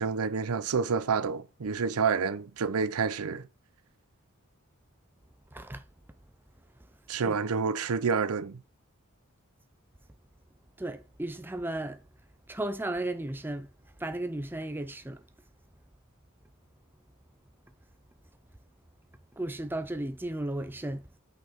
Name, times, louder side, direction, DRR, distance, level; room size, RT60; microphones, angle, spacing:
voice 1, 0.0-3.4 7.1-8.6, right 5 dB, 85° right, 0.6 m, -28 dB
voice 2, 5.5-5.8 7.2-7.4 10.8-12.0 12.5-13.7 14.0-15.2 19.4-21.1, right 1 dB, 10° right, 0.5 m, -34 dB
5.7 x 5.7 x 4.4 m
head